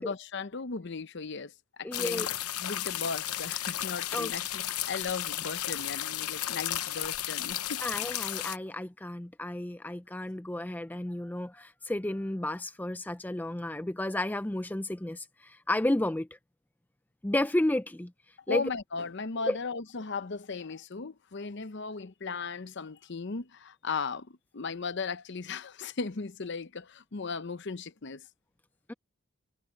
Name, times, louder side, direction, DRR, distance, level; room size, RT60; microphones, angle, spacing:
voice 1, 0.0-2.3 2.6-7.8 18.5-28.3, left 4 dB, 50° left, 0.7 m, -37 dB
voice 2, 1.8-2.3 4.1-4.3 7.8-16.3 17.2-18.1 18.5-18.7 19.4-19.6 28.9-29.0, left 1 dB, 10° left, 0.4 m, -32 dB
sound 1, 1.9-8.6, left 12 dB, 90° left, 0.9 m, -34 dB
head